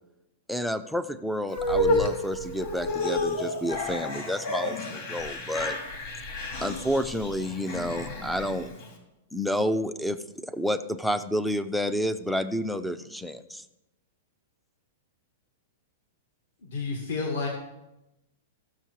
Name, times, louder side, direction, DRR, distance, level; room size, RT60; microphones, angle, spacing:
voice 1, 0.5-5.8 6.6-8.7 9.3-13.6, equal, ahead, 12 dB, 0.4 m, -30 dB
sound 1, 1.5-8.9, left 1 dB, 45° left, 2.2 m, -30 dB
voice 2, 16.6-17.5, left 4 dB, 60° left, 0 dB, 1.8 m, -30 dB
14.5 x 6.4 x 4.6 m, 0.94 s
supercardioid pair, 170°, 0 cm